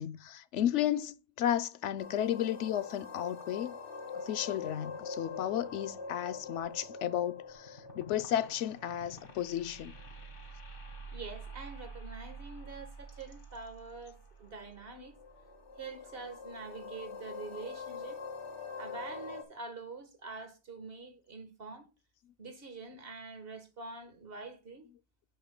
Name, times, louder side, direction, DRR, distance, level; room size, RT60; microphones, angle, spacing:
voice 1, 0.0-3.7 4.1-9.9, left 11 dB, 85° left, 0.9 m, -33 dB
sound 1, 2.0-19.4, left 3 dB, 50° left, 1.6 m, -45 dB
voice 2, 11.1-15.1 15.8-18.2 18.8-21.9 22.4-24.9, right 4 dB, 55° right, 1.6 m, -45 dB
10.0 x 9.0 x 2.2 m
omnidirectional pair, 1.2 m